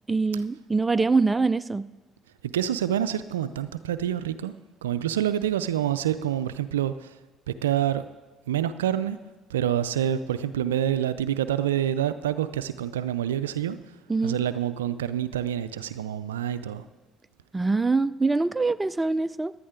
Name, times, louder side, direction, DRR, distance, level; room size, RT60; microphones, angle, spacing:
voice 1, 0.1-1.9 14.1-14.4 17.5-19.5, right 3 dB, 20° right, 16 dB, 0.4 m, -24 dB
voice 2, 2.4-4.5 4.8-7.2 7.5-8.0 8.5-9.2 9.5-13.8 14.2-16.8, right 10 dB, 90° right, 13 dB, 0.4 m, -27 dB
15.0 x 11.0 x 3.7 m, 1.2 s
hypercardioid pair, 55°, 0 cm